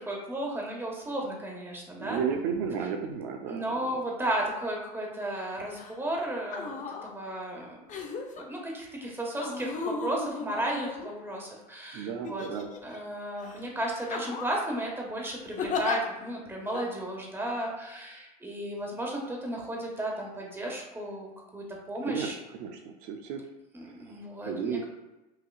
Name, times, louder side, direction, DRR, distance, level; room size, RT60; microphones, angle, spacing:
voice 1, 0.1-2.2 3.4-6.7 7.0-8.1 8.4-12.4 12.8-22.3 23.7-24.8, right 1 dB, 10° right, -1 dB, 1.3 m, -34 dB
voice 2, 2.0-4.0 11.9-12.7 22.0-23.4 23.8-24.8, right 7 dB, 65° right, 3 dB, 0.6 m, -34 dB
sound 1, 5.7-5.9 6.4-7.1 7.9-8.4 9.4-11.5 12.2-13.0 13.4-13.6 14.0-14.6 15.6-16.0 16.7-16.9, left 5 dB, 40° left, 0.7 m, -35 dB
5.9 x 2.8 x 2.4 m, 1.0 s
hypercardioid pair, 90°, 20 cm